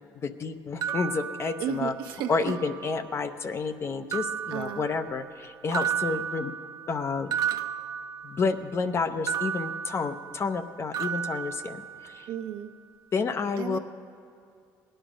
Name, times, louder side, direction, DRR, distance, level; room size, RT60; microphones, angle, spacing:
voice 1, 0.2-1.9 2.3-6.5 6.9-7.3 8.2-11.8 12.0-12.3 13.1-13.8, left 4 dB, 35° left, 10 dB, 0.6 m, -30 dB
sound 1, 0.8-2.1 2.5-3.3 4.1-5.4 5.7-8.7 9.3-10.6 10.9-12.3, right 9 dB, 55° right, 0.5 m, -34 dB
voice 2, 1.6-2.5 4.5-4.9 12.3-12.7 13.6-13.8, right 9 dB, 80° right, 5 dB, 0.9 m, -33 dB
17.5 x 10.0 x 5.0 m, 2.4 s
cardioid pair, 120°, 8 cm